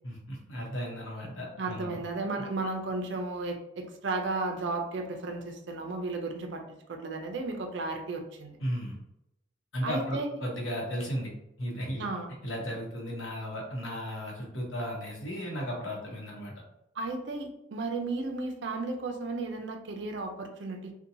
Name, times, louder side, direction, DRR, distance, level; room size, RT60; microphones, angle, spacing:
voice 1, 0.0-2.0 8.6-9.0 9.7-11.3 11.6-12.1 12.4-16.5, equal, 70° left, -1 dB, 0.8 m, -35 dB
voice 2, 1.6-6.6 6.9-8.6 9.8-10.4 12.0-12.3 17.0-20.9, right 3 dB, 60° right, 3 dB, 0.4 m, -34 dB
2.7 x 2.2 x 2.6 m, 0.82 s
head